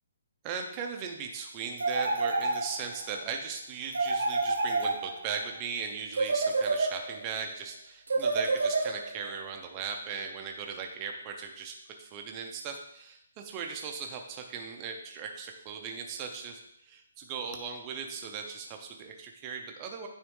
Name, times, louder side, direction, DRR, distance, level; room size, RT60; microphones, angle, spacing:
voice 1, 0.4-20.1, right 6 dB, 15° right, 3 dB, 0.5 m, -38 dB
sound 1, 1.8-3.1 3.9-5.4 6.1-7.3 8.1-9.3, right 3 dB, 80° right, 1.1 m, -29 dB
8.9 x 3.6 x 3.7 m, 0.76 s
hypercardioid pair, 180°, 0 cm